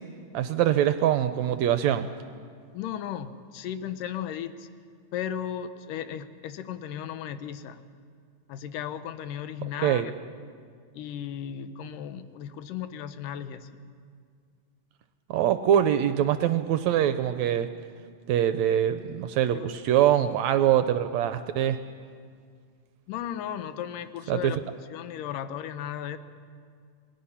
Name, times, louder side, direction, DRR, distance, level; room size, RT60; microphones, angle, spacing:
voice 1, 0.3-2.1 9.8-10.1 15.3-17.7 18.3-21.8 24.3-24.5, right 10 dB, 75° right, 10 dB, 1.7 m, -23 dB
voice 2, 2.7-4.7 5.1-7.8 8.5-10.1 10.9-13.8 19.5-19.7 23.1-24.6 24.9-26.2, left 9 dB, 90° left, 11 dB, 2.5 m, -35 dB
27.5 x 19.5 x 5.7 m, 2.1 s
omnidirectional pair, 3.7 m